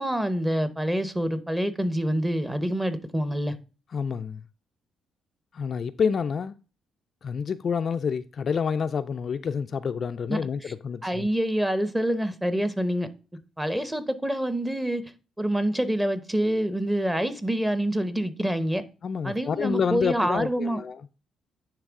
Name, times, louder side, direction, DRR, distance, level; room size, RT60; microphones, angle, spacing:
voice 1, 0.0-3.6 10.3-10.5 11.0-13.1 13.6-15.0 15.4-18.8 19.2-20.8, right 1 dB, 10° right, 0.8 m, -26 dB
voice 2, 3.9-4.5 5.5-6.6 7.2-11.3 19.0-21.0, left 6 dB, 50° left, 0.3 m, -28 dB
9.8 x 3.3 x 3.6 m
cardioid pair, 90°, 0 cm